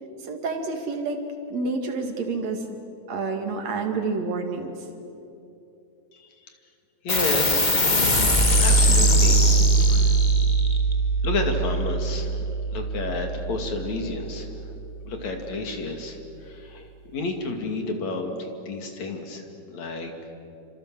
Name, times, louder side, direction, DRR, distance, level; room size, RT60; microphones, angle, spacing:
voice 1, 0.3-1.2 1.5-2.6 3.1-4.7, right 3 dB, 60° right, 4 dB, 3.3 m, -28 dB
voice 2, 6.1-6.5 7.0-7.8 8.6-9.4 9.9-10.1 11.2-12.3 12.7-14.5 15.1-16.2 16.4-20.1, left 3 dB, 60° left, 4 dB, 3.6 m, -31 dB
sound 1, 7.1-14.0, right 1 dB, 20° left, 1.5 m, -21 dB
28.5 x 25.5 x 7.6 m, 2.8 s
omnidirectional pair, 3.6 m